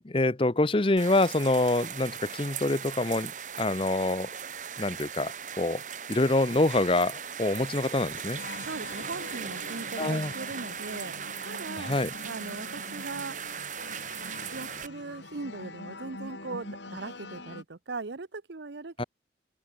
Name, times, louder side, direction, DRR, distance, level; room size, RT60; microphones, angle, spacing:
voice 1, 0.0-4.3 4.8-5.8 6.1-8.4 10.0-10.3 11.8-12.1 19.0-19.1, left 2 dB, 30° left, 0.8 m, -26 dB
sound 1, 1.0-14.9, right 7 dB, 45° right, 1.9 m, -39 dB
sound 2, 8.4-17.6, left 2 dB, 85° left, 4.6 m, -44 dB
voice 2, 8.6-11.1 11.4-12.0 12.2-13.4 14.5-19.0, right 3 dB, 75° right, 0.9 m, -39 dB
open air
head